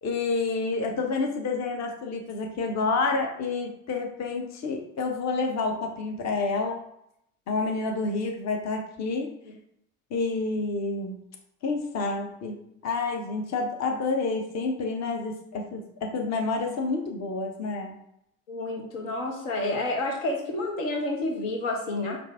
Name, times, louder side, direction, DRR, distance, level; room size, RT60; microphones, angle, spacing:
voice 1, 0.0-6.8 7.5-9.3 10.1-11.2 11.6-12.6 12.8-18.0, left 3 dB, 40° left, 2 dB, 0.9 m, -29 dB
voice 2, 18.5-22.2, left 2 dB, 70° left, 1 dB, 0.9 m, -29 dB
4.9 x 2.6 x 3.4 m, 0.76 s
figure-of-eight pair, 55°, 41 cm